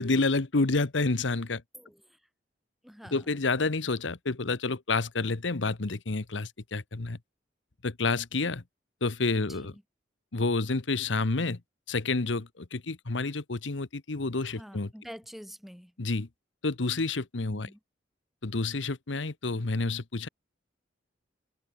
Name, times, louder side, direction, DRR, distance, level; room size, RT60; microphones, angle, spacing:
voice 1, 0.0-1.6 3.1-7.2 7.8-8.6 9.0-9.7 10.3-11.6 11.9-14.9 16.0-16.3 16.6-17.7 18.4-20.3, left 3 dB, 90° left, 1.1 m, -29 dB
voice 2, 1.7-2.2 2.8-3.3 9.3-9.8 14.4-15.9 17.5-17.8, equal, ahead, 3.7 m, -47 dB
head